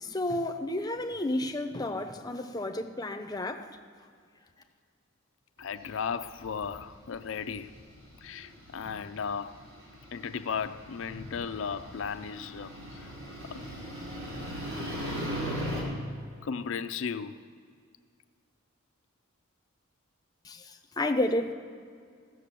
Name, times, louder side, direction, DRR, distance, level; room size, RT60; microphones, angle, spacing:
voice 1, 0.0-3.7 20.4-21.5, left 1 dB, 20° left, 0.7 m, -31 dB
voice 2, 5.6-7.7 8.2-9.6 10.1-13.1 13.5-13.6 16.4-17.4, left 6 dB, 65° left, 0.4 m, -35 dB
sound 1, 5.6-6.8 7.4-15.8, equal, 75° right, 3.7 m, -38 dB
16.0 x 6.5 x 6.8 m
head